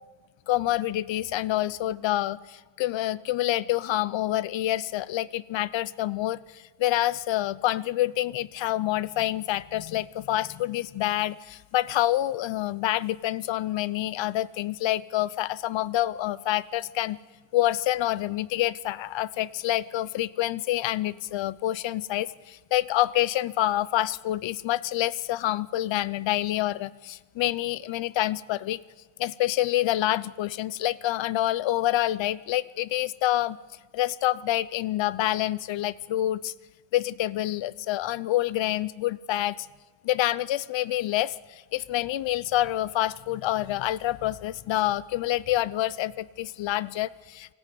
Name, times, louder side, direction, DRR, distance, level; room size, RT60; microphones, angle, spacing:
voice 1, 0.5-17.2 17.5-28.8 29.2-33.6 33.9-36.5 36.9-39.6 40.0-47.5, left 14 dB, 65° left, 20 dB, 0.7 m, -27 dB
25.5 x 14.0 x 9.3 m, 1.3 s
wide cardioid pair, 170°, 48 cm